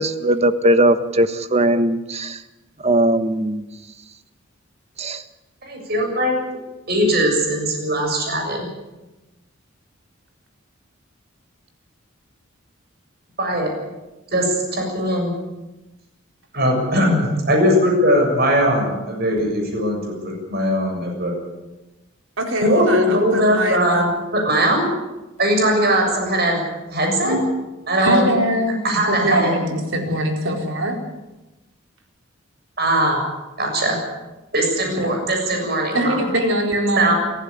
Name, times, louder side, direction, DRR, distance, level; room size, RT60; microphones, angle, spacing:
voice 1, 0.0-2.4 2.8-3.6 5.0-5.2, right 1 dB, 30° right, 10 dB, 1.3 m, -19 dB
voice 2, 5.6-6.3 6.9-8.7 13.4-13.7 14.3-15.3 16.5-21.3 22.6-24.9 25.4-26.6 26.9-27.4 27.9-28.3 28.8-29.5 32.8-33.2 33.6-34.0 34.5-36.2 37.0-37.2, equal, 50° right, 2 dB, 7.2 m, -20 dB
voice 3, 22.4-24.1 27.2-27.5 28.0-28.8 29.1-31.0 35.0-35.1 35.9-37.1, right 1 dB, 75° right, 2 dB, 4.4 m, -22 dB
28.5 x 15.5 x 8.7 m, 1.0 s
head